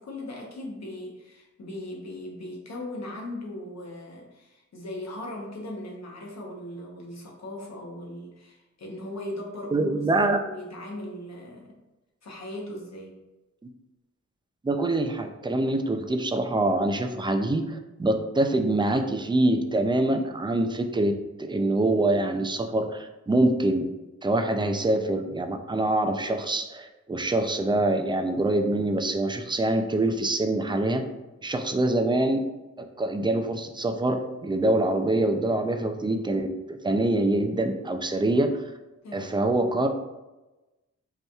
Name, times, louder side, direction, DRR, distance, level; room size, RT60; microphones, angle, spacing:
voice 1, 0.0-11.8 12.2-13.2 39.0-39.4, left 1 dB, 60° left, -1 dB, 1.0 m, -38 dB
voice 2, 9.7-10.4 14.6-21.1 21.4-23.9 24.2-31.0 31.4-32.4 33.0-38.5 39.1-39.9, right 2 dB, 15° right, 5 dB, 0.3 m, -25 dB
5.3 x 2.9 x 2.3 m, 1.1 s
wide cardioid pair, 130°, 30 cm